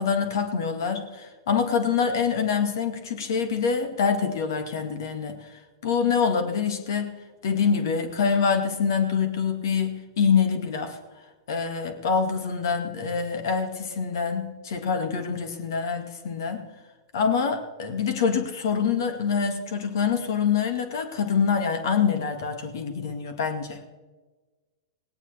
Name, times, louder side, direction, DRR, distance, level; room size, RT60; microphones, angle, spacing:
voice 1, 0.0-5.5 5.8-7.2 7.4-11.0 11.5-16.6 17.1-23.8, left 6 dB, 65° left, 6 dB, 2.2 m, -25 dB
18.0 x 18.0 x 3.5 m, 1.3 s
hypercardioid pair, 100°, 2 cm